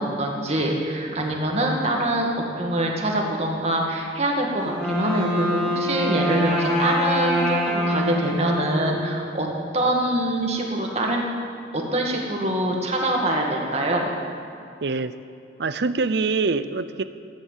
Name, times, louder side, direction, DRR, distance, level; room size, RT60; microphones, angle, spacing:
voice 1, 0.0-2.3 2.6-9.5 9.7-11.3 11.7-14.1, right 1 dB, 35° right, 0 dB, 2.0 m, -24 dB
Wind instrument woodwind instrument, 4.6-9.5, equal, 5° left, 2.5 m, -25 dB
voice 2, 14.8-15.2 15.6-17.0, right 4 dB, 65° right, 13 dB, 0.6 m, -24 dB
15.5 x 10.0 x 7.4 m, 2.6 s
head